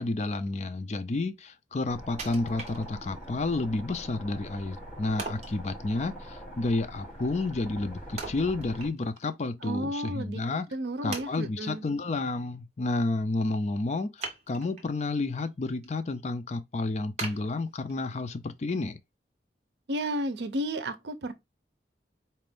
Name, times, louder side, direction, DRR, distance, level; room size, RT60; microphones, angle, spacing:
voice 1, 0.0-10.7 11.0-19.0, left 2 dB, 40° left, 0.4 m, -31 dB
sound 1, 1.9-8.9, equal, 10° left, 1.9 m, -43 dB
Wood, 2.2-3.3 3.8-3.9 5.2-5.6 8.2-9.3 9.6-9.7 10.4-10.5 11.1-11.8 14.2-14.9 15.4-15.9 16.3-16.4 17.2-18.2 18.7-18.8, right 4 dB, 40° right, 0.9 m, -40 dB
voice 2, 9.6-10.4 10.7-11.9 19.9-21.3, right 1 dB, 75° right, 0.6 m, -32 dB
4.3 x 2.5 x 3.4 m
head